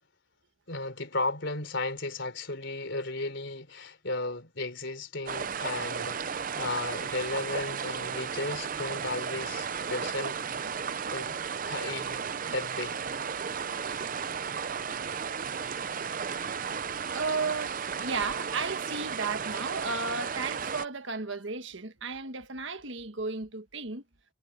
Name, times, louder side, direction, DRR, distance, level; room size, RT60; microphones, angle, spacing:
voice 1, 0.7-10.4 11.1-11.4 11.6-12.2 12.5-13.0, left 2 dB, 60° left, 4.3 m, -35 dB
sound 1, 5.3-20.9, right 6 dB, 40° right, 0.6 m, -34 dB
voice 2, 17.0-24.0, right 4 dB, 60° right, 1.6 m, -34 dB
head